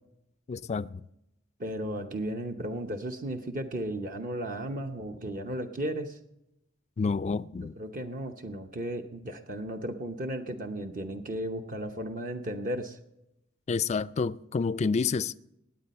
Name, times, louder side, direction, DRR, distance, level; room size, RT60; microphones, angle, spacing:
voice 1, 0.5-1.0 7.0-7.8 13.7-15.3, left 5 dB, 35° left, 0.3 m, -29 dB
voice 2, 1.6-6.2 7.8-13.0, right 1 dB, 45° right, 0.9 m, -35 dB
18.5 x 8.4 x 4.2 m
head